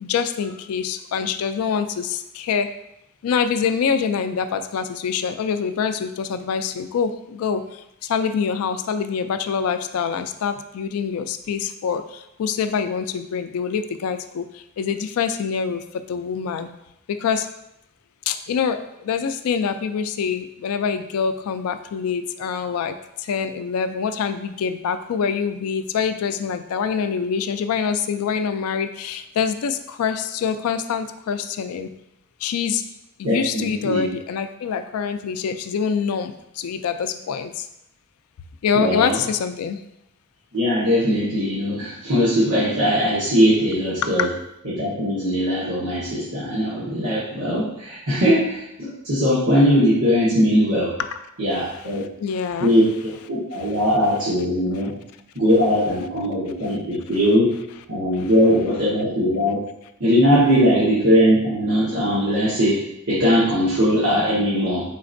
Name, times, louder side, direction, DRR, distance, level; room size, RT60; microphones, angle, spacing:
voice 1, 0.0-2.7 3.2-16.7 17.1-17.5 18.3-31.9 32.4-32.8 33.2-37.7 38.6-39.8 44.0-44.3 51.0-51.2 52.0-52.7 53.5-53.7 54.7-54.9 56.6-56.7 58.1-58.3, left 6 dB, 85° left, 10 dB, 0.3 m, -25 dB
voice 2, 33.2-34.1 38.7-39.2 40.5-44.3 44.6-50.9 51.4-52.1 52.6-54.9 55.3-57.5 57.9-59.6 60.0-64.8, equal, 75° right, -10 dB, 1.1 m, -20 dB
4.2 x 3.9 x 2.5 m, 0.82 s
head